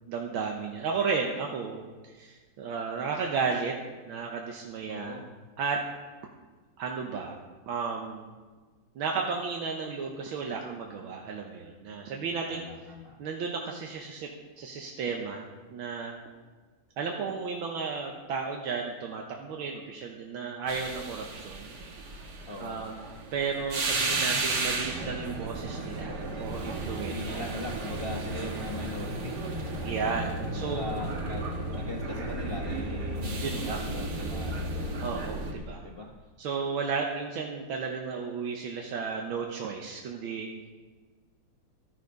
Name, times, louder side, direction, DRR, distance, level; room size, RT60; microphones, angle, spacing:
voice 1, 0.1-3.8 4.1-5.2 5.6-5.8 6.8-7.4 7.7-8.3 9.0-12.6 13.2-14.3 14.6-16.2 17.0-21.8 22.6-23.0 23.3-27.5 29.8-30.9 33.4-33.8 35.0-35.8 36.4-40.7, right 5 dB, 85° right, 1 dB, 1.8 m, -33 dB
voice 2, 4.9-5.3 11.9-12.2 12.5-13.2 22.5-22.8 24.1-24.4 27.1-29.3 30.5-33.4 33.7-34.7 35.8-36.1, left 2 dB, 35° left, -3 dB, 1.1 m, -40 dB
sound 1, 20.7-35.5, right 2 dB, 55° right, 1.9 m, -33 dB
13.0 x 9.8 x 5.3 m, 1.4 s
omnidirectional pair, 2.2 m